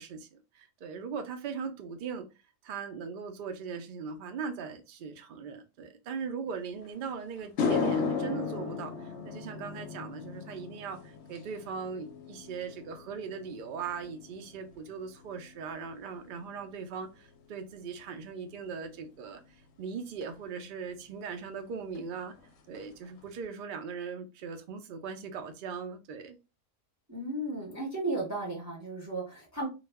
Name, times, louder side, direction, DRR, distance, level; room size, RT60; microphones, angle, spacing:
voice 1, 0.0-2.3 2.6-22.3 22.7-26.4, right 6 dB, 65° right, 0.5 m, -39 dB
sound 1, 6.8-6.9 7.4-15.9 16.2-16.6 20.2-20.3 21.9-22.0 22.3-22.5 22.7-23.3, left 5 dB, 70° left, 0.8 m, -35 dB
voice 2, 27.1-29.7, right 2 dB, 15° right, 0.6 m, -34 dB
2.3 x 2.0 x 3.3 m
omnidirectional pair, 1.3 m